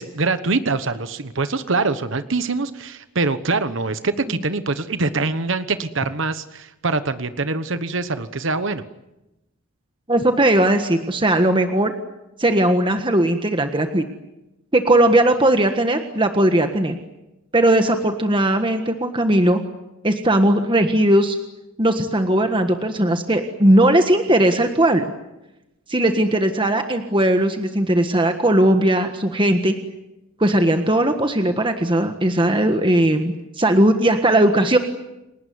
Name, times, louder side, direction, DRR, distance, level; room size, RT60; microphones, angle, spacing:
voice 1, 0.0-8.8, right 3 dB, 60° right, 11 dB, 1.2 m, -24 dB
voice 2, 10.1-11.9 12.4-14.0 14.7-16.9 17.5-19.6 20.0-21.4 21.8-25.1 25.9-29.7 30.4-34.8, right 1 dB, 25° right, 6 dB, 1.5 m, -18 dB
29.5 x 19.0 x 9.5 m, 0.95 s
head